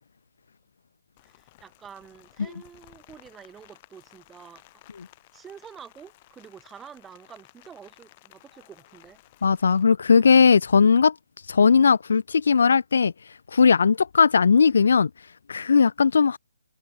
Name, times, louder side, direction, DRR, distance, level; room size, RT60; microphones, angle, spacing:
Rain, 1.2-9.8, left 19 dB, 30° left, 7.1 m, -55 dB
voice 1, 1.2-4.8 5.3-9.2, right 7 dB, 10° right, 3.6 m, -47 dB
voice 2, 9.4-11.1 11.5-13.1 13.5-15.1 15.5-16.4, left 5 dB, 55° left, 0.8 m, -18 dB
figure-of-eight pair, 140°, 0 cm